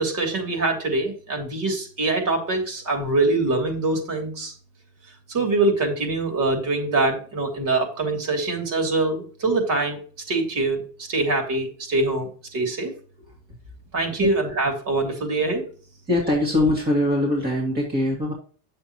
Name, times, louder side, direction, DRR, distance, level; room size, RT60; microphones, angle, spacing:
voice 1, 0.0-4.5 5.3-10.0 10.3-12.9 13.9-15.6, right 2 dB, 40° right, 3 dB, 3.1 m, -24 dB
voice 2, 16.1-18.3, left 1 dB, 20° right, -2 dB, 2.1 m, -22 dB
8.8 x 7.1 x 3.0 m, 0.41 s
cardioid pair, 130°, 47 cm